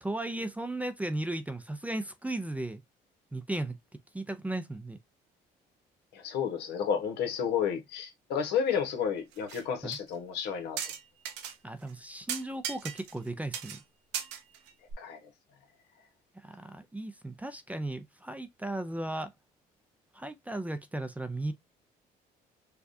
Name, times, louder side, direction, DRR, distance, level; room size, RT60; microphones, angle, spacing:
voice 1, 0.0-2.8 3.3-3.8 4.1-5.0 9.8-10.0 11.6-13.8 16.4-19.3 20.1-21.5, right 1 dB, 10° right, 0.4 m, -36 dB
voice 2, 6.1-10.8 15.0-15.2, left 7 dB, 80° left, 1.2 m, -31 dB
sound 1, 9.3-9.6 9.9-10.0 10.8-11.5 11.9-12.0 12.3-13.3 13.5-13.8 14.1-14.9, right 9 dB, 90° right, 0.9 m, -37 dB
4.6 x 2.4 x 2.6 m
cardioid pair, 110°, 17 cm